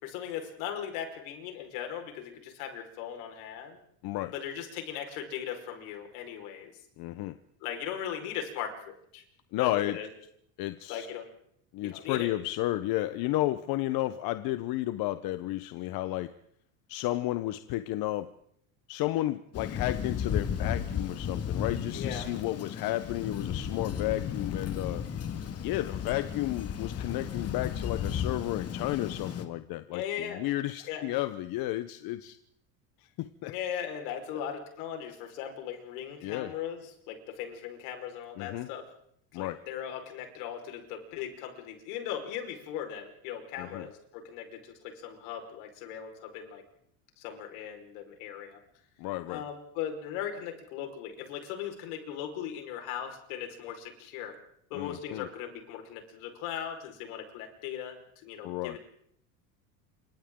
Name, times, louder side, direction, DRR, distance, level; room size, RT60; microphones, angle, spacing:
voice 1, 0.0-3.8 4.3-6.7 7.6-9.2 9.6-10.1 10.9-11.3 11.8-12.3 21.9-22.3 29.9-30.4 30.9-31.1 33.4-38.9 39.3-46.6 47.2-48.6 49.3-54.4 54.7-58.8, left 9 dB, 75° left, 4 dB, 5.0 m, -38 dB
voice 2, 7.0-7.3 9.5-10.0 10.6-11.1 11.7-16.3 16.9-18.3 18.9-25.0 25.6-32.4 33.2-33.5 36.2-36.5 38.4-38.7 39.3-39.6 43.6-43.9 49.0-49.4 54.7-55.3 58.4-58.8, left 16 dB, 55° left, 11 dB, 1.0 m, -32 dB
Thunder, 19.5-29.4, left 8 dB, 35° left, 1.9 m, -34 dB
28.5 x 25.5 x 3.8 m, 0.70 s
supercardioid pair, 120°, 44 cm